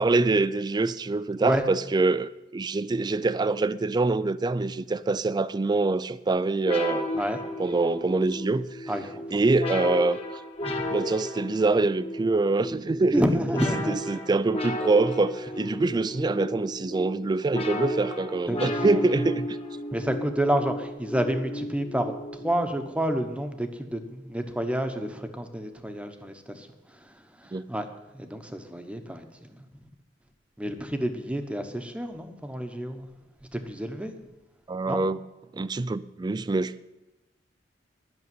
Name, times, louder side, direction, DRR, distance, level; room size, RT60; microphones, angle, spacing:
voice 1, 0.0-7.1 7.6-8.9 9.3-10.2 10.9-13.3 13.7-19.6 27.5-27.6 34.7-35.2 35.5-36.8, right 3 dB, 20° right, 0.3 m, -25 dB
sound 1, 6.6-22.9, left 1 dB, 35° left, 1.3 m, -34 dB
voice 2, 8.9-9.4 10.6-10.9 13.1-14.0 18.5-19.0 19.9-27.8 28.1-29.6 30.6-33.1 33.5-34.1 34.9-35.0, equal, 5° right, 1.0 m, -29 dB
11.0 x 6.4 x 9.3 m
head